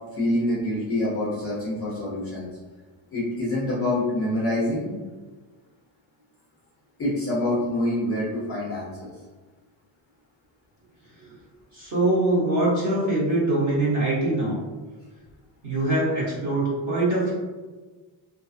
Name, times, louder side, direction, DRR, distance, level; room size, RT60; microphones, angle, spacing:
voice 1, 0.1-2.5 3.1-4.9 7.0-9.1, left 1 dB, 30° left, -7 dB, 0.4 m, -26 dB
voice 2, 11.7-14.6 15.6-17.3, right 2 dB, 35° right, -7 dB, 1.0 m, -23 dB
2.4 x 2.2 x 2.4 m, 1.3 s
cardioid pair, 180°, 47 cm